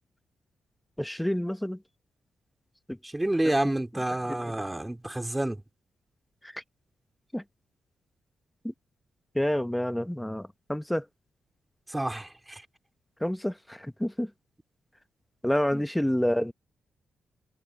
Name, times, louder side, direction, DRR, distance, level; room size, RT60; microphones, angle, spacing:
voice 1, 1.0-1.8 2.9-3.0 4.3-4.5 6.4-6.5 7.3-7.4 8.6-8.7 9.3-11.0 13.2-14.3 15.4-16.5, left 1 dB, 5° left, 1.1 m, -28 dB
voice 2, 3.0-5.6 11.9-12.6 15.7-15.9, right 1 dB, 15° right, 2.9 m, -29 dB
cardioid pair, 70°, 0 cm